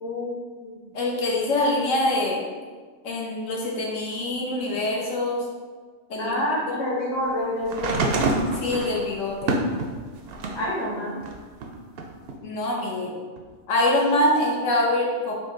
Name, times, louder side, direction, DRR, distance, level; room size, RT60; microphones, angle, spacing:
voice 1, 0.0-0.9 6.2-8.2 10.6-11.2, left 1 dB, 25° left, -5 dB, 0.8 m, -28 dB
voice 2, 0.9-2.4 3.0-5.4 6.1-6.4 6.7-6.8 8.5-9.6 12.4-13.1 13.7-15.3, left 1 dB, 70° left, -2 dB, 1.1 m, -24 dB
sound 1, 7.7-10.7 11.2-12.4 13.4-13.5, right 3 dB, 65° right, 0.6 m, -27 dB
4.5 x 2.7 x 3.6 m, 1.5 s
omnidirectional pair, 1.4 m